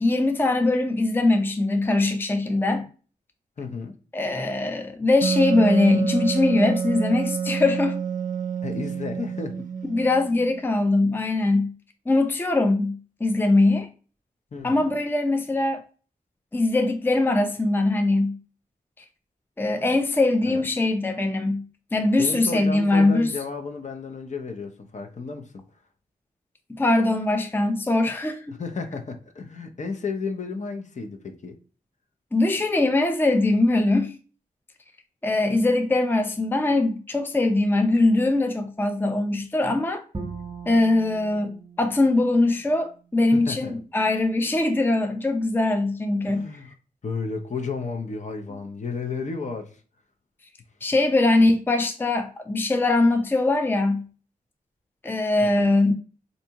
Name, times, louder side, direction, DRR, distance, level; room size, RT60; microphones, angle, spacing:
voice 1, 0.0-2.9 4.1-8.0 9.9-11.7 12.1-13.9 14.6-15.8 16.5-18.4 19.6-21.6 21.9-23.3 26.8-28.6 32.3-34.2 35.2-40.0 40.7-46.5 50.8-54.0 55.0-55.9, left 2 dB, 15° left, 0.5 m, -22 dB
voice 2, 3.6-4.0 8.6-9.7 14.5-14.9 20.4-20.7 22.2-25.7 28.5-31.6 43.3-43.7 46.3-46.7 47.0-49.8 55.4-55.8, left 4 dB, 50° left, 0.7 m, -33 dB
Wind instrument woodwind instrument, 5.2-10.6, right 6 dB, 60° right, 0.4 m, -28 dB
Bowed string instrument, 40.1-43.3, right 4 dB, 30° right, 0.7 m, -40 dB
3.5 x 2.7 x 2.8 m
cardioid pair, 55°, 15 cm